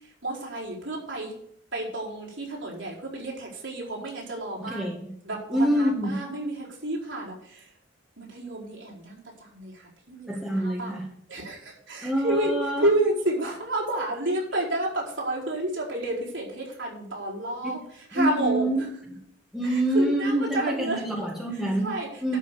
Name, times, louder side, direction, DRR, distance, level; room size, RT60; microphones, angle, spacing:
voice 1, 0.2-1.3 1.7-4.9 5.2-7.7 8.2-10.4 10.6-11.0 11.3-12.5 12.8-17.8 18.1-18.9 19.6-21.0 21.8-22.1, right 1 dB, 70° right, -4 dB, 4.4 m, -30 dB
voice 2, 4.6-5.1 5.5-6.2 10.3-11.1 12.0-12.9 18.1-19.2 19.5-21.9 22.2-22.4, right 1 dB, ahead, -2 dB, 1.8 m, -26 dB
12.0 x 5.7 x 6.7 m, 0.69 s
head